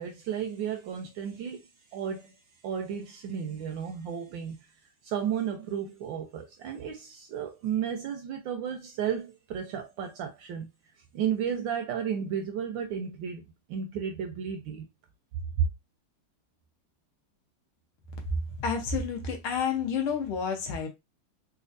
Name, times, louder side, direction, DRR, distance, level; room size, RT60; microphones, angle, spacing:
voice 1, 0.0-1.6 1.9-2.3 2.6-4.6 5.0-10.7 11.1-13.4 13.7-14.9, right 8 dB, 75° right, 1.1 m, -33 dB
voice 2, 18.6-20.9, left 6 dB, 75° left, 1.7 m, -30 dB
4.2 x 2.4 x 2.5 m
omnidirectional pair, 2.4 m